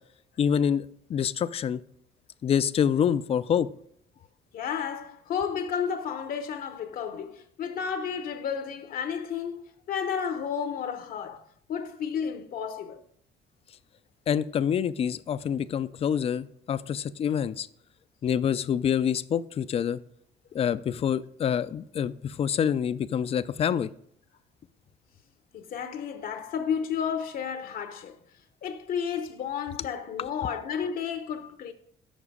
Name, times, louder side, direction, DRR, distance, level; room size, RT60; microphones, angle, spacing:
voice 1, 0.4-0.8 1.1-1.8 2.4-3.7 14.3-17.7 18.2-20.0 20.5-23.9, left 8 dB, 35° left, 0.4 m, -26 dB
voice 2, 4.5-11.4 11.7-13.0 25.5-28.1 28.6-31.7, left 7 dB, 60° left, 0.8 m, -32 dB
7.2 x 5.5 x 4.9 m
cardioid pair, 110°, 17 cm